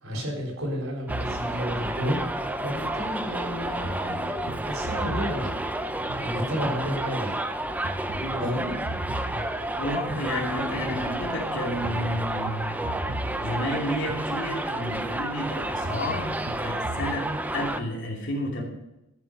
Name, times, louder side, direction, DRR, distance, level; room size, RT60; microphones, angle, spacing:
voice 1, 0.0-2.2 2.6-5.5 6.2-7.4 8.4-8.6 9.3-9.5, equal, 85° right, 0 dB, 4.0 m, -31 dB
Subway metro underground, 1.1-17.8, right 1 dB, 10° right, 0.5 m, -31 dB
sound 1, 1.1-3.0 3.8-6.9 7.8-10.9 11.8-14.9 15.8-17.2, right 1 dB, 65° right, 1.2 m, -38 dB
voice 2, 8.2-8.8 9.8-12.9 13.4-18.6, left 1 dB, 60° left, 0 dB, 2.7 m, -31 dB
13.0 x 7.1 x 5.3 m, 0.93 s
head